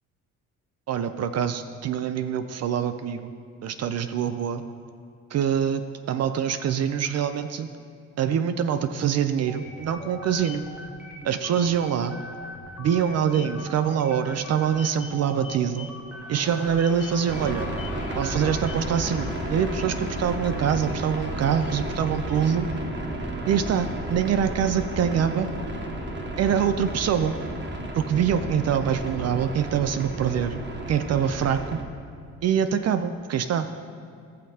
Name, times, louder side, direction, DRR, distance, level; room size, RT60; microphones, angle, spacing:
voice 1, 0.9-3.3 3.6-4.6 5.3-7.7 8.2-10.6 11.2-12.2 12.8-15.9 16.3-17.7 18.1-22.7 23.5-25.5 26.4-27.3 28.0-30.6 30.9-31.8 32.4-33.7, right 8 dB, 55° right, 10 dB, 0.5 m, -25 dB
sound 1, 9.5-19.0, left 2 dB, 5° right, 1.1 m, -41 dB
Crowd, 16.1-23.4, left 7 dB, 80° left, 0.8 m, -44 dB
sound 2, 17.3-31.8, right 1 dB, 35° right, 1.3 m, -33 dB
17.5 x 6.5 x 2.8 m, 2.4 s
cardioid pair, 90°, 30 cm